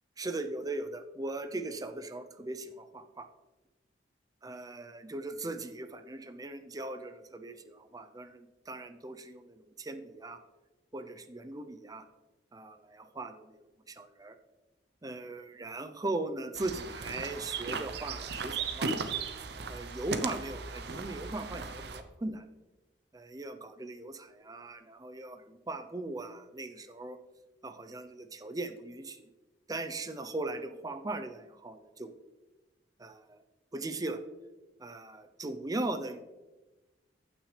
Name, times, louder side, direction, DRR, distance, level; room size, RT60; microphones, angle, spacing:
voice 1, 0.2-3.3 4.4-10.4 10.9-12.0 12.5-14.4 15.0-18.9 19.7-22.5 23.1-27.2 27.6-29.3 29.7-32.1 33.0-33.4 33.7-34.2 34.8-36.2, right 2 dB, 20° right, 8 dB, 0.6 m, -39 dB
sound 1, 16.6-22.0, right 4 dB, 65° right, 0.7 m, -37 dB
15.0 x 6.2 x 3.3 m, 1.1 s
head